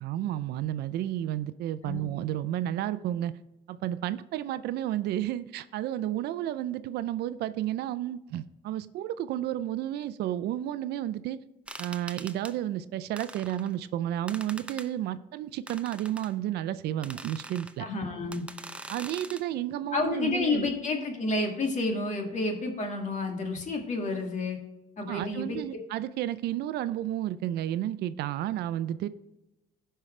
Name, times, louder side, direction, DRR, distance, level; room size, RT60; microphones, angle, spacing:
voice 1, 0.0-3.3 3.7-11.4 11.8-17.9 18.9-20.7 25.1-29.1, right 12 dB, 75° right, 14 dB, 0.5 m, -32 dB
sound 1, 11.7-12.5 13.2-13.7 14.3-14.9 15.7-16.3 17.0-17.7 18.3-19.4, right 2 dB, 5° right, 0.6 m, -43 dB
voice 2, 17.8-18.5 19.9-24.6 25.0-25.8, left 3 dB, 45° left, 2 dB, 2.1 m, -30 dB
15.5 x 5.6 x 3.3 m, 0.93 s
cardioid pair, 110°, 17 cm